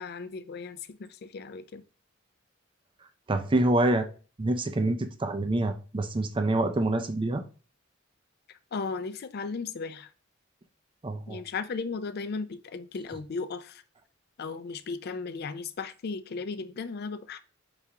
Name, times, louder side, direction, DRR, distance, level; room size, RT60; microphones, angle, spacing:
voice 1, 0.0-1.8 8.7-10.1 11.3-13.8 14.4-17.4, left 4 dB, 50° left, 0.4 m, -36 dB
voice 2, 3.3-4.1 4.4-7.4 11.0-11.4, right 2 dB, 25° right, 0.4 m, -26 dB
4.9 x 3.4 x 2.8 m
head